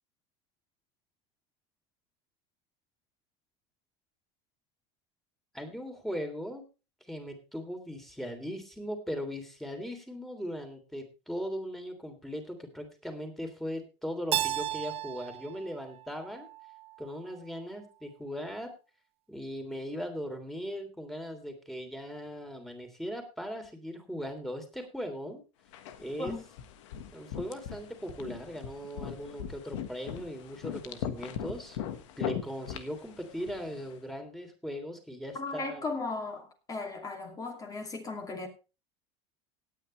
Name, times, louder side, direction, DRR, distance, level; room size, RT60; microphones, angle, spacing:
voice 1, 5.5-6.6 7.1-16.5 17.0-18.7 19.3-25.4 26.0-26.3 27.1-31.8 32.2-35.8, equal, ahead, 5 dB, 3.2 m, -39 dB
Keyboard (musical), 14.3-17.1, right 14 dB, 40° right, 0.8 m, -35 dB
sound 1, 25.7-33.9, left 9 dB, 85° left, 1.6 m, -40 dB
voice 2, 35.3-38.5, left 3 dB, 25° left, 4 dB, 2.7 m, -36 dB
17.5 x 9.4 x 3.3 m, 0.31 s
supercardioid pair, 125°, 15 cm